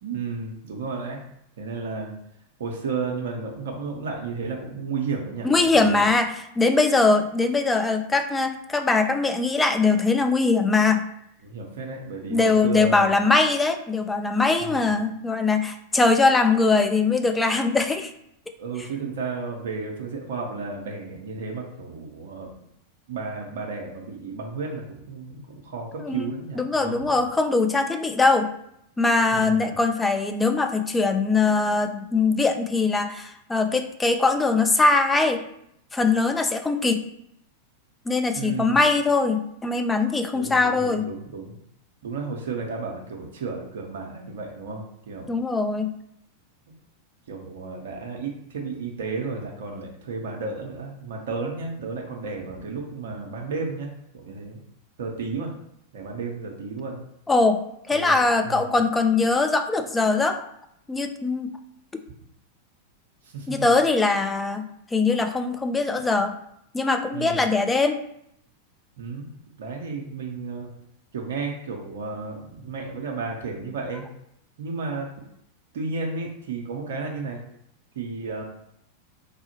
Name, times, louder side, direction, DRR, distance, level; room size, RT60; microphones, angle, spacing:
voice 1, 0.0-1.2 1.6-2.1 2.6-6.1 11.4-13.1 14.6-15.0 18.6-22.5 23.1-27.3 29.3-29.8 38.3-38.8 40.3-41.6 42.0-45.4 47.3-54.6 55.0-55.5 55.9-57.0 57.9-58.1 58.4-58.7 63.2-63.7 67.1-67.4 69.0-69.2 69.6-70.7 71.1-74.0 74.6-75.1 75.7-77.4 78.0-78.4, right 4 dB, 60° right, 0 dB, 0.5 m, -33 dB
voice 2, 5.4-11.0 12.3-18.1 26.0-26.3 26.6-28.5 29.0-35.4 35.9-37.0 38.1-41.1 45.3-45.9 57.3-60.4 60.9-61.5 63.5-66.3 66.7-68.0, left 3 dB, 10° left, 7 dB, 0.3 m, -21 dB
3.2 x 2.0 x 2.9 m, 0.74 s
figure-of-eight pair, 90°, 0 cm